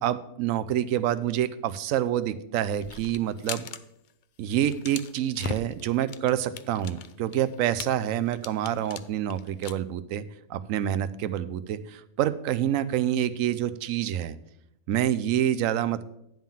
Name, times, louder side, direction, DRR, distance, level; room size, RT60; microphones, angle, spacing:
voice 1, 0.0-3.7 4.4-10.2 10.5-14.4 14.9-16.0, right 11 dB, 85° right, 13 dB, 1.0 m, -27 dB
sound 1, 2.8-3.8 4.1-4.2 4.5-9.7, left 7 dB, 65° left, 0.4 m, -39 dB
10.5 x 3.7 x 7.2 m, 0.81 s
omnidirectional pair, 1.3 m